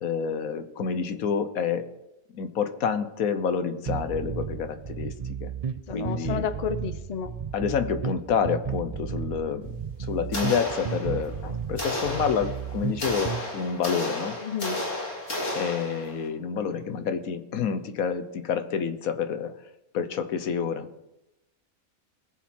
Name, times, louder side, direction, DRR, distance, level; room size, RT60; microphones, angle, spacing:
voice 1, 0.0-1.9 2.3-5.1 5.4-5.5 5.9-6.5 7.5-9.8 10.1-14.4 15.5-19.6 19.9-20.9, left 7 dB, 90° left, 10 dB, 1.4 m, -28 dB
sound 1, 3.9-13.4, right 7 dB, 45° right, 0.5 m, -33 dB
voice 2, 5.9-7.3 14.4-14.8, left 6 dB, 40° left, 11 dB, 0.6 m, -31 dB
sound 2, 10.3-11.4 11.8-16.3, left 1 dB, 60° left, 3.0 m, -32 dB
20.5 x 7.3 x 4.4 m, 0.91 s
omnidirectional pair, 1.4 m